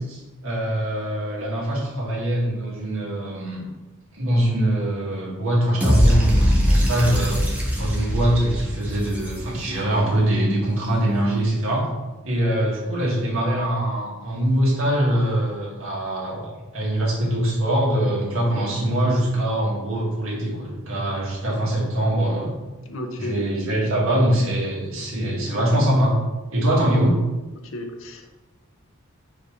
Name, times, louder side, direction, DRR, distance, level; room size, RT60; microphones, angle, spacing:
voice 1, 0.0-3.6 4.1-7.4 7.8-11.9 12.2-22.5 23.2-26.2 26.5-27.2, right 1 dB, 70° right, -4 dB, 1.9 m, -23 dB
sound 1, 5.8-9.9, equal, 5° right, 1.0 m, -21 dB
voice 2, 22.9-23.4 27.6-28.3, left 2 dB, 65° left, 4 dB, 0.8 m, -33 dB
4.7 x 4.0 x 5.0 m, 1.1 s
head